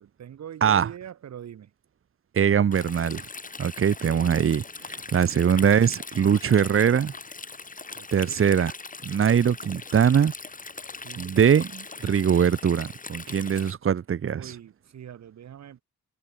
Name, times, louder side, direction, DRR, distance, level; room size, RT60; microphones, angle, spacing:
voice 1, 0.0-1.7 4.0-4.5 5.2-5.4 7.9-8.5 10.9-11.4 13.4-13.8 14.3-15.8, right 9 dB, 60° right, 5.6 m, -43 dB
voice 2, 2.3-3.2 3.6-7.1 8.1-8.7 9.0-10.3 11.2-14.5, right 8 dB, 45° right, 1.7 m, -22 dB
Stream, 2.7-13.7, left 4 dB, 25° left, 6.5 m, -40 dB
cardioid pair, 90°, 30 cm